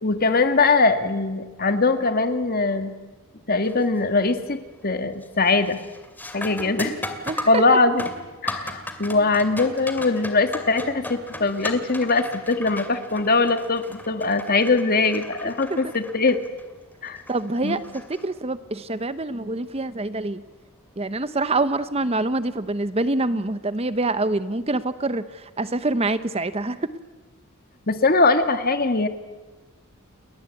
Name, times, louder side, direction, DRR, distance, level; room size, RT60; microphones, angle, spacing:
voice 1, 0.0-2.9 3.5-5.8 6.3-7.0 7.4-8.0 8.4-16.4 17.0-17.2 17.6-17.8 27.9-29.1, left 3 dB, 40° left, 9 dB, 1.9 m, -21 dB
sound 1, 3.6-4.0 4.4-4.9 5.2-18.7 21.2-21.3 22.2-22.4, left 1 dB, 10° left, 2.5 m, -37 dB
voice 2, 7.3-7.6 15.7-15.9 17.3-20.4 21.0-26.8, right 2 dB, 25° right, 13 dB, 0.9 m, -26 dB
29.0 x 22.5 x 8.4 m, 1.2 s
head